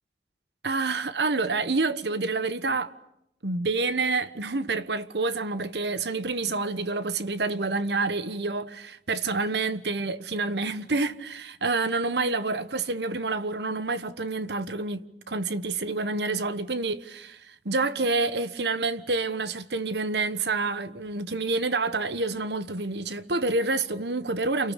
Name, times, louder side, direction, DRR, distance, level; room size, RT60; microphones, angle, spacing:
voice 1, 0.6-2.9 3.4-24.7, right 3 dB, 80° right, 1.2 m, -28 dB
29.0 x 28.5 x 6.7 m
head